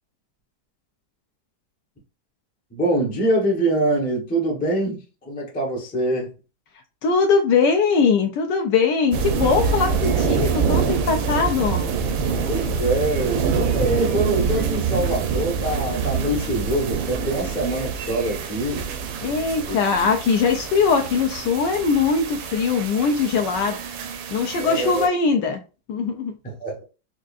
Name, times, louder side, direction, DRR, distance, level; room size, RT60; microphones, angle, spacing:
voice 1, 2.7-6.3 12.5-18.8 19.7-19.8 24.6-25.1 26.4-26.8, right 1 dB, 15° left, 0.3 m, -24 dB
voice 2, 7.0-11.9 19.2-23.8 24.3-25.6 25.9-26.3, left 5 dB, 75° left, 1.1 m, -21 dB
sound 1, 9.1-25.1, right 6 dB, 80° right, 1.4 m, -26 dB
4.6 x 2.5 x 2.5 m
omnidirectional pair, 2.2 m